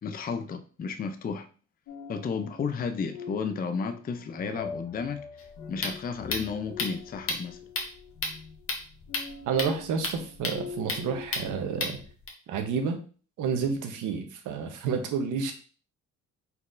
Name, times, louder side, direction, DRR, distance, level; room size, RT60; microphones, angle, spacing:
voice 1, 0.0-1.5 2.1-5.3 5.7-7.6, left 5 dB, 30° left, 0.5 m, -33 dB
sound 1, 1.9-12.1, left 5 dB, 75° left, 0.7 m, -44 dB
sound 2, 5.4-12.3, left 3 dB, 45° left, 1.2 m, -34 dB
voice 2, 9.5-12.0 12.5-13.0 13.4-15.5, right 6 dB, 85° right, 0.9 m, -30 dB
4.3 x 4.0 x 2.5 m
cardioid pair, 90°, 30 cm